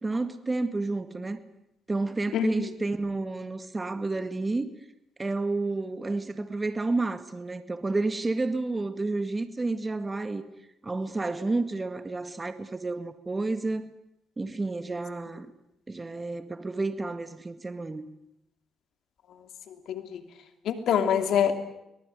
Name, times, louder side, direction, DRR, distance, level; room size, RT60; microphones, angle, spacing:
voice 1, 0.0-1.4 1.9-4.7 5.2-10.4 10.8-13.9 14.4-15.5 15.9-18.1, right 3 dB, 20° right, 1.9 m, -30 dB
voice 2, 2.3-2.7 19.9-20.2 20.6-21.5, left 8 dB, 75° left, 2.9 m, -25 dB
24.0 x 19.5 x 9.5 m
cardioid pair, 90°, 0 cm